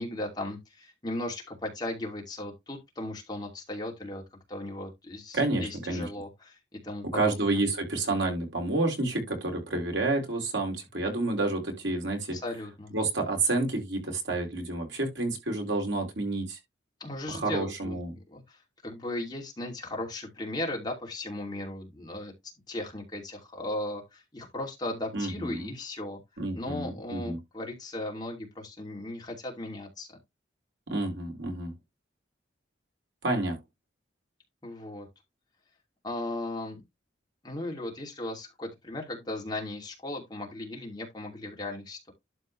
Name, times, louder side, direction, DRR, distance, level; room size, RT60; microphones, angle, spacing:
voice 1, 0.0-4.2 4.5-7.6 12.3-12.9 17.0-18.0 18.3-18.6 18.8-22.3 22.7-26.2 26.5-30.1 34.6-35.1 36.0-36.8 37.4-42.1, left 1 dB, 20° left, 2.7 m, -37 dB
voice 2, 5.3-6.1 7.1-12.4 12.9-16.6 17.3-18.1 25.1-25.7 26.4-27.4 30.9-31.7 33.2-33.6, right 2 dB, 75° right, 4.2 m, -29 dB
12.0 x 4.5 x 3.2 m
head